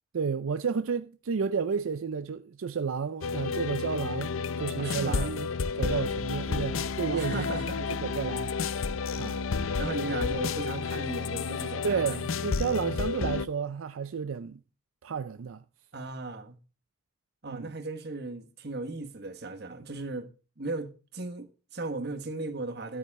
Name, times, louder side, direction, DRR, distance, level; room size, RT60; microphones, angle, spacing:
voice 1, 0.1-5.5 5.8-7.5 7.8-8.5 9.2-9.4 11.8-14.6 15.0-15.6 17.5-17.7, right 6 dB, 85° right, 0.5 m, -31 dB
sound 1, 3.2-13.5, left 5 dB, 85° left, 0.6 m, -31 dB
voice 2, 4.8-5.3 7.1-7.8 9.8-12.2 15.9-16.6 17.4-20.3 20.6-23.0, right 3 dB, 55° right, 1.4 m, -36 dB
12.5 x 8.8 x 3.6 m
head